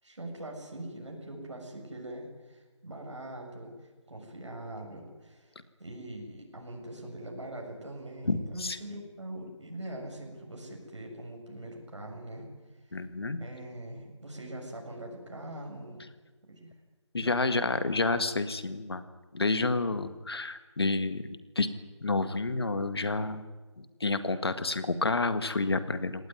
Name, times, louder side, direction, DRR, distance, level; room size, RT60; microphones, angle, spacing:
voice 1, 0.0-12.5 13.4-16.1 16.5-16.7 17.2-17.7, right 1 dB, 70° right, 1 dB, 7.5 m, -42 dB
voice 2, 8.3-8.8 12.9-13.4 17.1-19.0 19.3-21.2 21.5-21.7 22.0-23.4 23.8-26.3, left 3 dB, 55° left, 11 dB, 1.8 m, -29 dB
24.0 x 18.5 x 9.6 m, 1.3 s
figure-of-eight pair, 170°, 16 cm